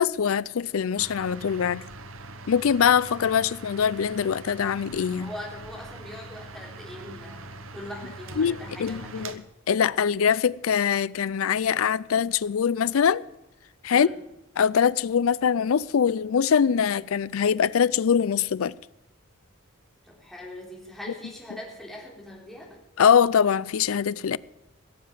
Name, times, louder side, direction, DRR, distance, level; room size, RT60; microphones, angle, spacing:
voice 1, 0.0-1.8 2.5-5.3 8.4-13.2 13.8-14.1 14.6-18.8 23.0-24.4, left 7 dB, 75° left, 0.4 m, -23 dB
sound 1, 1.0-9.4, right 2 dB, 70° right, 1.0 m, -42 dB
voice 2, 5.2-9.4 13.9-14.1 20.0-22.8, left 1 dB, ahead, 3.4 m, -41 dB
16.5 x 7.6 x 7.9 m
head